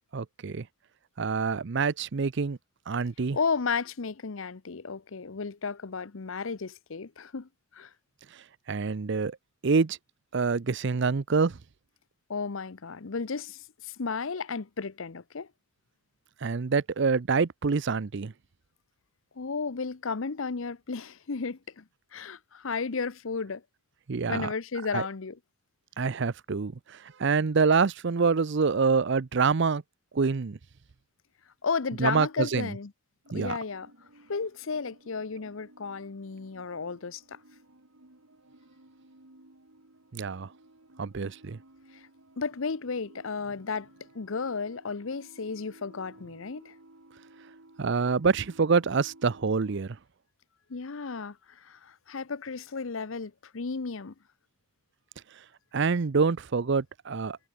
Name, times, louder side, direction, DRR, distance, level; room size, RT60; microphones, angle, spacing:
voice 1, 0.1-0.7 1.2-2.6 2.9-3.4 8.7-9.4 9.6-10.0 10.3-11.6 16.4-18.3 24.1-24.5 24.9-25.0 26.0-29.8 30.1-30.6 32.0-32.7 33.3-33.6 40.1-40.5 41.0-41.6 47.8-50.0 55.7-57.4, right 5 dB, 60° right, 0.6 m, -26 dB
voice 2, 3.3-7.9 12.3-15.5 19.4-21.8 22.1-23.6 24.3-25.4 31.6-32.9 33.3-33.9 34.3-37.4 41.9-42.0 42.4-43.9 44.1-46.7 50.7-54.1, left 5 dB, 70° left, 0.8 m, -33 dB
sound 1, 33.2-49.8, right 1 dB, 90° right, 3.0 m, -56 dB
head